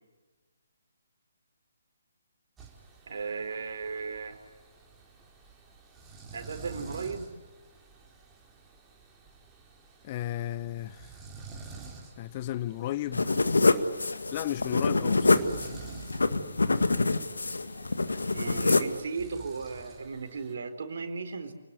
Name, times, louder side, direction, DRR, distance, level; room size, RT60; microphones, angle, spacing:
sound 1, 2.6-20.5, right 4 dB, 10° right, 4.2 m, -50 dB
voice 1, 3.1-4.4 6.3-7.3 18.3-21.5, right 4 dB, 50° right, 4.2 m, -36 dB
voice 2, 10.0-11.0 12.2-13.3 14.3-15.4, left 14 dB, 30° left, 0.7 m, -34 dB
sound 2, 13.1-19.0, left 3 dB, 70° left, 1.9 m, -26 dB
29.0 x 19.5 x 9.7 m
figure-of-eight pair, 140°, 0 cm